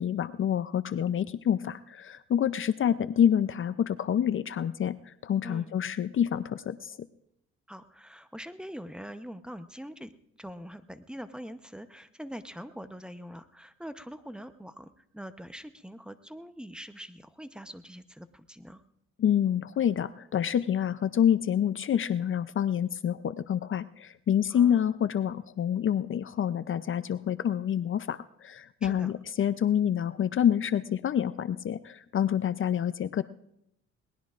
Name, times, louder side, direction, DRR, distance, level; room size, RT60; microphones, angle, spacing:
voice 1, 0.0-7.0 19.2-33.2, left 9 dB, 45° left, 13 dB, 0.5 m, -27 dB
voice 2, 7.7-18.8 24.5-24.9 28.8-29.1, equal, 5° right, 10 dB, 0.8 m, -43 dB
21.5 x 19.0 x 2.5 m, 0.78 s
cardioid pair, 90°, 30 cm